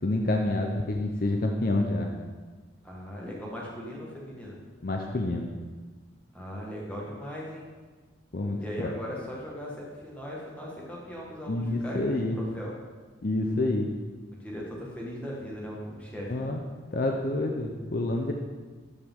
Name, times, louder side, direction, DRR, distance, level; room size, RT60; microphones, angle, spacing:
voice 1, 0.0-2.1 4.8-5.5 8.3-9.0 11.5-12.4 13.2-13.9 16.3-16.6 16.9-18.3, left 2 dB, 45° left, 2 dB, 0.6 m, -28 dB
voice 2, 2.8-4.6 6.3-7.6 8.5-12.7 14.3-16.5, equal, 5° left, -4 dB, 1.6 m, -38 dB
13.0 x 5.0 x 3.7 m, 1.4 s
head